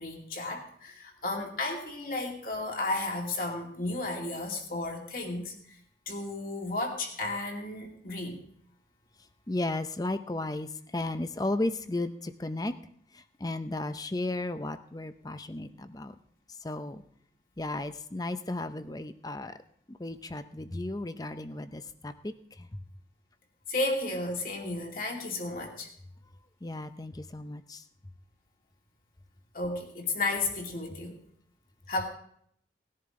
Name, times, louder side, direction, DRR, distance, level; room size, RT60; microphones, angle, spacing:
voice 1, 0.0-5.8 6.1-8.4 23.7-25.9 29.5-31.2 31.9-32.0, left 2 dB, 50° left, 1 dB, 2.5 m, -33 dB
voice 2, 9.5-12.8 13.1-16.2 16.6-17.0 17.6-19.6 19.9-22.7 26.6-27.8, left 2 dB, 20° left, 10 dB, 0.6 m, -34 dB
18.5 x 10.5 x 3.8 m, 0.67 s
head